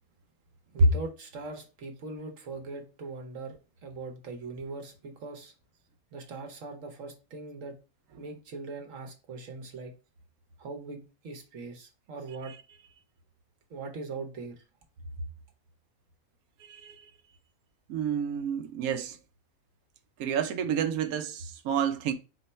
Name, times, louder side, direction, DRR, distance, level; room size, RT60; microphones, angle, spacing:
voice 1, 0.7-5.5 6.1-7.8 8.2-9.9 10.6-12.5 13.7-14.6, right 3 dB, 65° right, 1.2 m, -41 dB
voice 2, 16.6-17.0 17.9-19.2 20.2-22.1, right 8 dB, 90° right, 1.1 m, -30 dB
4.5 x 2.2 x 4.0 m
omnidirectional pair, 1.5 m